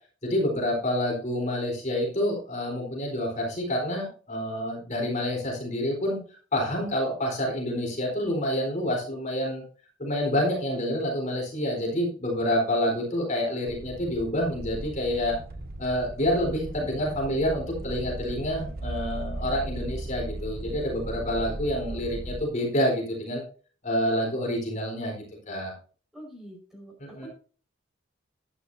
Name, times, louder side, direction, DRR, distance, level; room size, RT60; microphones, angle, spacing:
voice 1, 0.2-6.2 6.5-9.6 10.0-15.4 15.8-23.4 23.8-25.1 25.5-25.7 27.0-27.3, left 1 dB, 40° left, -1 dB, 4.1 m, -28 dB
sound 1, 13.7-22.4, right 1 dB, 50° right, 0.9 m, -37 dB
voice 2, 26.1-26.9 27.2-27.3, equal, ahead, 0 dB, 4.9 m, -45 dB
11.0 x 11.0 x 2.7 m, 0.39 s
head